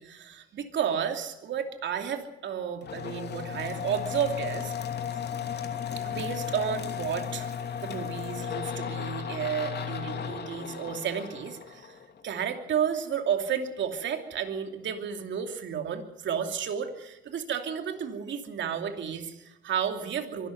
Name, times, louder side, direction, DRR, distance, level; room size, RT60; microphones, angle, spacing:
voice 1, 0.0-4.7 5.3-5.4 6.0-12.0 12.2-20.5, right 8 dB, 70° right, 5 dB, 2.8 m, -32 dB
sound 1, 2.8-12.4, left 8 dB, 55° left, 2.8 m, -35 dB
24.0 x 12.5 x 9.3 m, 0.95 s
cardioid pair, 90°, 20 cm